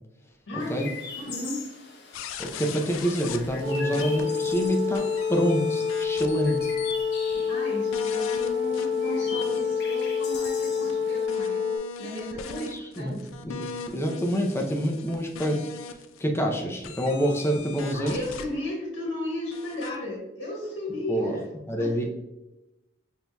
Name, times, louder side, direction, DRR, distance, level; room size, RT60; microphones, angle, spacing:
voice 1, 0.5-0.8 1.2-1.6 7.5-11.6 12.0-13.4 17.9-21.5 21.8-22.1, left 1 dB, 75° left, -4 dB, 1.3 m, -35 dB
Chirp tweet, 0.6-11.3, left 4 dB, 55° left, 0.7 m, -42 dB
sound 1, 2.1-4.7 4.9-7.0 7.3-7.4 7.9-9.6 10.0-16.2 16.8-18.5 19.5-20.0, left 6 dB, 90° left, 0.3 m, -40 dB
voice 2, 2.4-6.7 12.3-15.7 16.2-18.2 21.1-21.4 21.7-22.0, equal, 15° left, 2 dB, 0.4 m, -27 dB
sound 2, 3.6-11.8, left 6 dB, 50° right, 0.5 m, -27 dB
6.2 x 2.7 x 2.2 m, 0.98 s
head